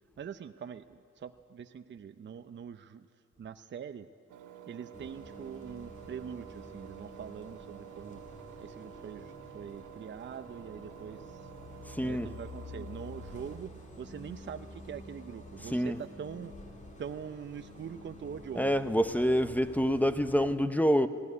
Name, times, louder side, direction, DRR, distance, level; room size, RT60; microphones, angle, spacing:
voice 1, 0.2-3.1 3.4-4.1 4.7-8.2 8.6-11.5 12.0-13.7 14.0-16.5 17.0-18.8, right 7 dB, 40° right, 9 dB, 0.7 m, -43 dB
Engine, 4.3-13.6, right 11 dB, 80° right, 1.7 m, -50 dB
Bus, 4.9-20.5, left 2 dB, 25° left, 3.5 m, -49 dB
voice 2, 11.9-12.3 15.7-16.0 18.5-21.1, equal, 5° left, 11 dB, 0.9 m, -27 dB
17.5 x 17.5 x 9.7 m, 2.4 s
cardioid pair, 90°, 30 cm